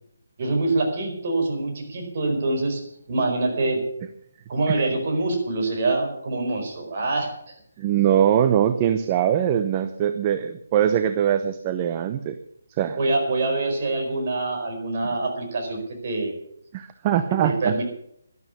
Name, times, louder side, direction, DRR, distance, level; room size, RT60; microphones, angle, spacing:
voice 1, 0.4-2.8 3.1-3.8 4.5-7.3 12.9-16.3 17.4-17.8, right 2 dB, 40° right, 2 dB, 4.7 m, -25 dB
voice 2, 7.8-12.4 12.8-13.0 16.7-17.8, right 10 dB, 25° right, 9 dB, 0.7 m, -22 dB
12.0 x 12.0 x 7.0 m, 0.72 s
figure-of-eight pair, 145°, 0 cm